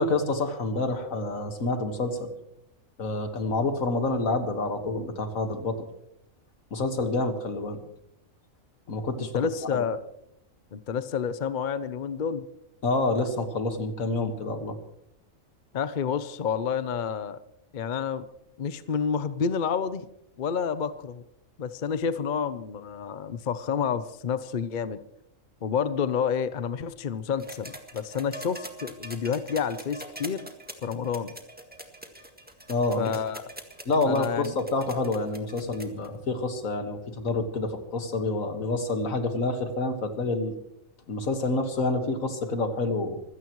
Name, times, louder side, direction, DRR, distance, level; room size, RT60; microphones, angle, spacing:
voice 1, 0.0-2.3 3.0-5.9 6.7-7.8 8.9-9.3 9.7-9.8 12.8-14.8 32.7-33.1 33.9-40.5 41.1-43.2, left 2 dB, 80° left, 7 dB, 2.1 m, -28 dB
voice 2, 9.2-10.0 10.7-12.4 15.7-17.4 17.7-18.2 18.6-20.1 20.4-21.2 21.6-25.0 25.6-30.5 30.8-31.3 33.0-33.4 34.1-34.5, left 7 dB, 45° left, 13 dB, 0.7 m, -29 dB
sound 1, 27.4-36.1 37.3-37.4, right 1 dB, 5° right, 1.8 m, -43 dB
25.5 x 16.5 x 3.1 m, 0.77 s
omnidirectional pair, 1.4 m